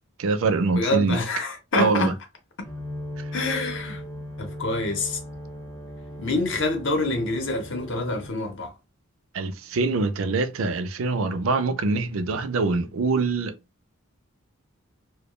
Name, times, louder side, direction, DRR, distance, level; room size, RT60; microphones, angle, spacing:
voice 1, 0.2-1.2 1.8-2.1 3.2-3.3 9.3-13.6, right 3 dB, 70° right, 0.4 m, -24 dB
voice 2, 0.7-2.1 3.3-4.0 4.4-5.2 6.2-8.7, left 2 dB, 55° left, 0.7 m, -26 dB
sound 1, 2.6-8.3, equal, 10° left, 0.5 m, -38 dB
2.2 x 2.1 x 3.0 m
head